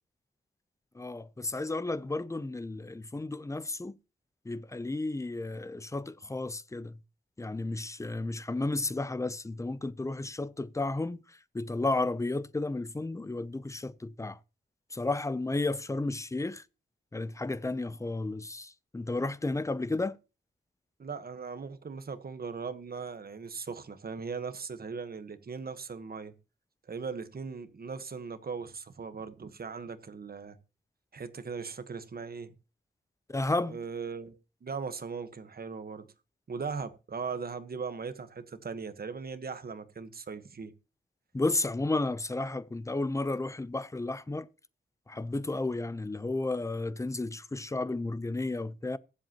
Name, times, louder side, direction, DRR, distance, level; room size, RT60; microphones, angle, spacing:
voice 1, 0.9-3.9 4.5-7.0 7.4-14.4 14.9-16.6 17.1-20.2 33.3-33.8 41.3-44.5 45.1-49.0, left 2 dB, 15° left, 0.6 m, -33 dB
voice 2, 21.0-26.3 26.9-30.6 31.1-32.5 33.7-34.3 34.6-36.1 36.5-40.7, right 5 dB, 55° right, 1.2 m, -39 dB
22.5 x 7.8 x 2.9 m
wide cardioid pair, 110°, 19 cm